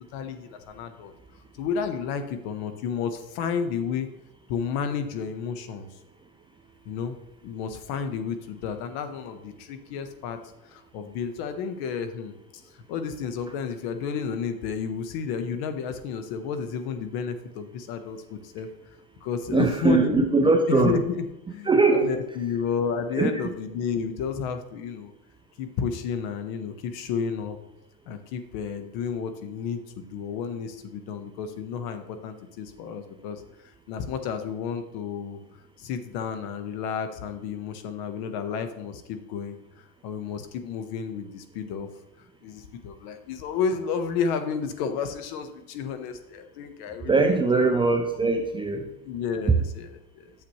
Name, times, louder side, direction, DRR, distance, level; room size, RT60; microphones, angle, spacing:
voice 1, 0.1-1.1 1.5-4.1 4.5-5.9 6.8-7.2 7.4-10.4 10.6-12.3 12.9-18.7 19.2-20.2 20.7-25.1 25.6-27.6 28.1-33.4 33.9-35.4 35.8-39.6 40.0-41.9 42.4-47.7 48.2-48.4 49.0-50.3, left 6 dB, 55° left, 8 dB, 1.2 m, -31 dB
voice 2, 19.5-21.0 21.6-22.1 23.1-23.3 47.1-48.9, right 3 dB, 10° right, 3 dB, 0.4 m, -21 dB
8.8 x 7.3 x 3.1 m, 0.87 s
supercardioid pair, 110°, 46 cm